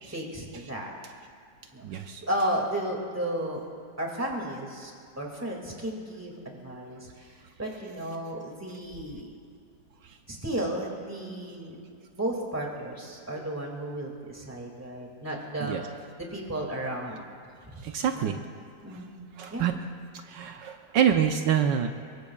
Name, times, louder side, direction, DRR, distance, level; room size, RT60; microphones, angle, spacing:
voice 1, 0.1-0.9 1.7-1.8 2.2-3.6 4.0-4.9 5.2-7.3 7.6-9.3 10.3-11.8 12.1-15.9 16.3-17.2 17.7-17.8 18.1-18.4 18.8-19.2 19.5-19.7, right 1 dB, 10° right, -1 dB, 2.1 m, -33 dB
voice 2, 1.8-2.2 15.7-15.8 17.8-18.4 19.4-19.8 20.3-21.9, right 9 dB, 75° right, 5 dB, 1.4 m, -26 dB
22.5 x 22.5 x 2.4 m, 2.4 s
omnidirectional pair, 2.0 m